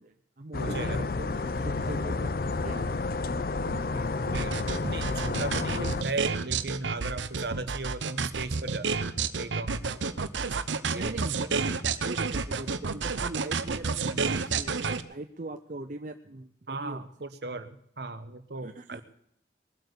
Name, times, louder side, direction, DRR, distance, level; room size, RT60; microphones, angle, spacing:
voice 1, 0.0-0.9 1.2-2.9 6.6-6.7 10.8-11.8 12.0-17.0 18.6-19.0, right 2 dB, 45° right, 6 dB, 0.6 m, -40 dB
sound 1, 0.5-6.0, left 3 dB, 50° left, 0.5 m, -30 dB
voice 2, 0.6-1.2 1.8-1.9 3.7-10.2 10.9-11.2 14.1-14.3 16.7-19.0, right 3 dB, 65° right, 11 dB, 1.1 m, -37 dB
sound 2, 4.3-15.0, right 4 dB, 85° right, 0.8 m, -30 dB
21.5 x 8.1 x 6.8 m, 0.71 s
head